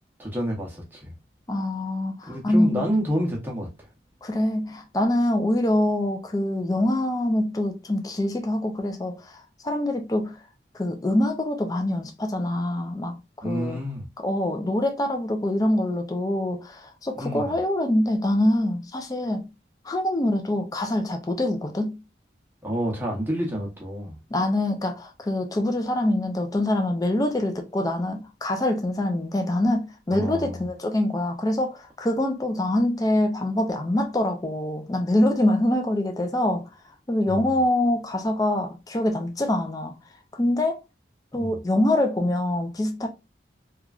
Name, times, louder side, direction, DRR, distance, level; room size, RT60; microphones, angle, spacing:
voice 1, 0.2-1.1 2.3-3.9 13.4-14.0 17.2-17.5 22.6-24.2 30.1-30.6 37.2-37.5 41.4-41.6, equal, 10° right, 0.7 m, -29 dB
voice 2, 1.5-2.8 4.2-9.3 9.6-10.4 10.7-13.8 14.2-19.5 19.8-22.0 24.3-36.7 37.1-39.9 40.3-40.8 41.3-43.1, left 1 dB, 20° left, 0.4 m, -24 dB
3.0 x 2.3 x 2.3 m
head